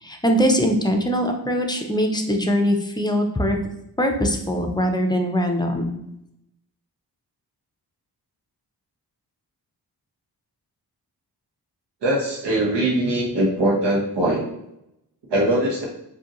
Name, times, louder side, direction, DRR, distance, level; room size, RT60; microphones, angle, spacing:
voice 1, 0.0-3.6 4.0-5.9, equal, 10° left, 3 dB, 0.5 m, -22 dB
voice 2, 12.0-14.4 15.3-15.8, right 1 dB, 90° right, -2 dB, 1.2 m, -21 dB
4.9 x 2.8 x 3.0 m, 0.83 s
wide cardioid pair, 120°, 40 cm